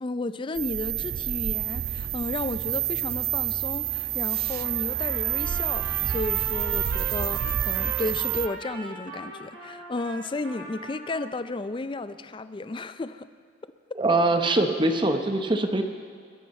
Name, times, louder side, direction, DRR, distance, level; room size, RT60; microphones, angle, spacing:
voice 1, 0.0-13.3, left 2 dB, 25° left, 12 dB, 0.4 m, -33 dB
sound 1, 0.5-8.5, right 12 dB, 50° right, 0.3 m, -28 dB
Trumpet, 4.4-11.3, right 1 dB, 85° right, 3.4 m, -40 dB
voice 2, 14.0-15.8, right 2 dB, 25° right, 6 dB, 0.8 m, -23 dB
21.5 x 11.0 x 4.2 m, 2.3 s
head